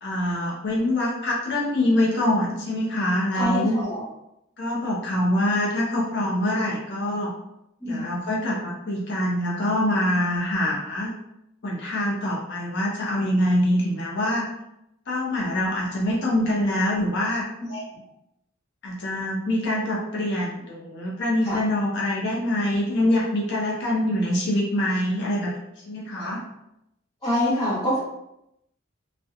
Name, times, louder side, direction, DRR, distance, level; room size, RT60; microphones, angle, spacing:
voice 1, 0.0-3.7 4.6-7.3 7.9-11.1 11.6-14.5 15.1-17.4 18.8-25.5 25.9-26.4, left 1 dB, 60° left, -3 dB, 0.5 m, -24 dB
voice 2, 3.3-4.0 7.8-8.1 17.6-17.8 21.4-21.6 26.2-26.4 27.2-28.0, left 1 dB, 20° left, -11 dB, 0.8 m, -26 dB
2.7 x 2.1 x 2.3 m, 0.83 s
head